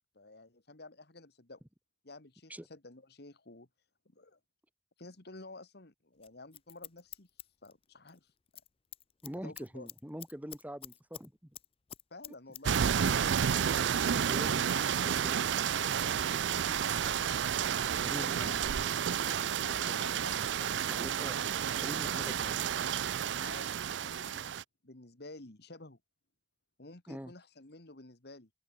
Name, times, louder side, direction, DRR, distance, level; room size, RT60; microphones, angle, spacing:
voice 1, 0.1-1.6 2.0-3.7 4.1-4.4 5.0-7.3 7.6-8.3 9.3-9.9 12.1-14.0 14.5-15.5 15.7-17.8 18.2-18.6 19.4-20.7 23.4-24.5 24.8-26.0 26.8-28.5, left 2 dB, 60° left, 2.0 m, -51 dB
Scissors, 6.2-8.2 8.5-8.7 8.9-11.3 11.5-12.6 12.9-13.0, left 11 dB, 30° left, 0.5 m, -48 dB
voice 2, 9.2-11.5 13.8-14.7 15.0-15.5 18.0-18.6 20.9-21.4 21.8-22.8 27.1-27.3, equal, 10° right, 1.7 m, -44 dB
sound 1, 12.6-24.6, right 8 dB, 75° right, 0.5 m, -31 dB
open air
head